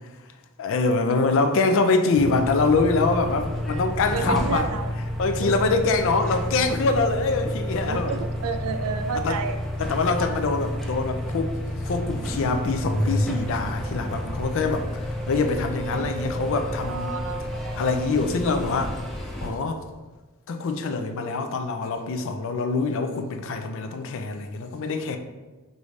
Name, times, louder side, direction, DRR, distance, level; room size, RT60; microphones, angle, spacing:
voice 1, 0.6-4.7 5.2-8.1 9.1-9.4 9.8-11.5 11.9-17.1 17.8-18.9 19.4-19.8 20.5-25.2, left 3 dB, 60° left, 7 dB, 0.4 m, -24 dB
sound 1, 2.1-19.5, equal, ahead, 0.4 m, -30 dB
voice 2, 4.1-4.9 5.4-5.9 7.9-9.6 16.8-17.8, right 5 dB, 85° right, 8 dB, 0.4 m, -31 dB
4.9 x 2.6 x 3.1 m, 1.2 s
head